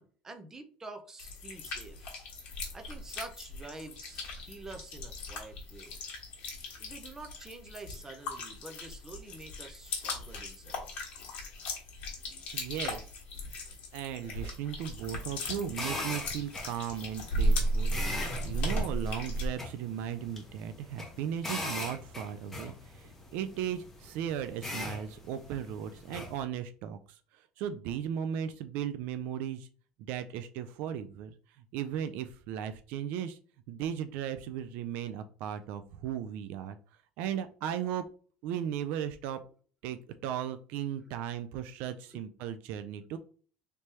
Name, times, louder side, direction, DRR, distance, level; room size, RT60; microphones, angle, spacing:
voice 1, 0.0-2.2 2.7-6.0 6.8-10.9 37.2-37.3 42.1-42.2, right 3 dB, 15° right, 6 dB, 0.6 m, -47 dB
sound 1, 1.2-19.5, equal, 50° left, 1.4 m, -36 dB
voice 2, 12.5-13.1 13.9-18.0 18.4-29.7 30.0-31.4 31.7-33.4 33.7-36.8 37.2-38.1 38.4-39.4 39.8-43.2, right 9 dB, 65° right, 10 dB, 0.3 m, -36 dB
sound 2, 15.0-26.4, left 2 dB, 10° left, 1.1 m, -41 dB
3.3 x 3.1 x 2.8 m, 0.42 s
cardioid pair, 135°, 3 cm